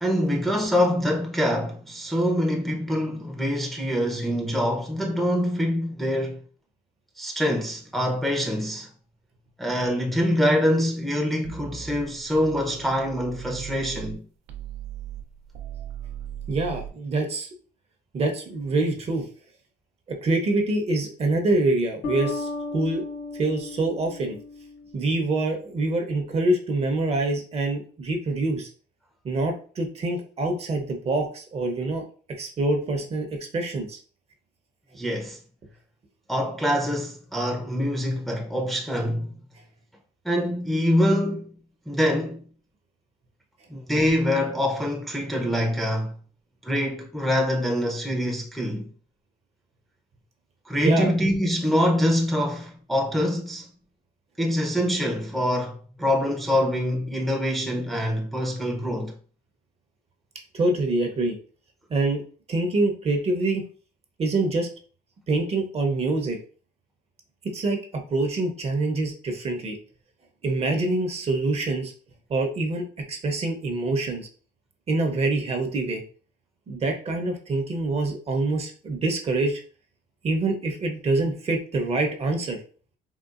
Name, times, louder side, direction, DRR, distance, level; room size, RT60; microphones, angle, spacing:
voice 1, 0.0-6.4 7.2-8.9 9.6-14.3 34.9-35.4 36.3-39.3 40.2-41.5 41.9-42.4 43.7-46.2 46.6-48.9 50.7-53.7 54.4-59.1, equal, ahead, 0.5 m, -25 dB
sound 1, 11.4-14.2 14.5-16.9, right 9 dB, 85° right, 0.5 m, -38 dB
voice 2, 16.5-17.5 18.1-19.3 20.1-23.0 23.3-24.4 24.9-28.7 29.2-32.0 32.4-34.0 50.8-51.1 60.5-61.4 61.9-62.2 62.5-63.7 64.2-64.7 65.3-66.4 67.4-69.8 70.4-71.9 72.3-74.3 74.9-76.0 76.7-79.6 80.2-82.6, right 2 dB, 35° right, 0.7 m, -25 dB
sound 2, 22.0-25.4, left 3 dB, 75° left, 1.0 m, -35 dB
3.7 x 2.3 x 2.4 m
cardioid pair, 110°, 17 cm